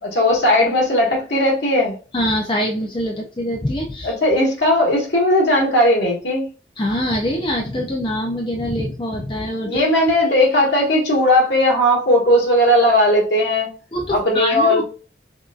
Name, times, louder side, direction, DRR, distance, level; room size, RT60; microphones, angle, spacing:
voice 1, 0.0-2.0 4.0-6.5 9.6-13.7 14.1-14.8, left 1 dB, 70° left, -3 dB, 1.7 m, -17 dB
voice 2, 2.1-4.1 6.8-9.7 13.9-14.8, equal, 25° left, 0 dB, 0.5 m, -24 dB
5.2 x 2.6 x 2.4 m, 0.37 s
head